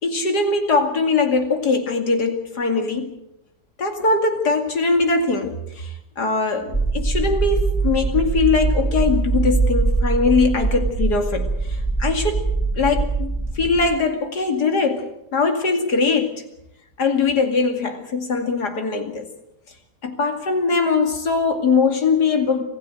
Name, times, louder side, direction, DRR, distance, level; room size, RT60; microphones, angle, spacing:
voice 1, 0.0-3.2 3.8-12.5 12.8-16.4 17.0-19.3 20.0-22.6, left 4 dB, 75° left, 3.0 m, -21 dB
sound 1, 6.7-13.8, right 3 dB, 10° left, 3.5 m, -22 dB
26.0 x 15.5 x 7.7 m
omnidirectional pair, 1.8 m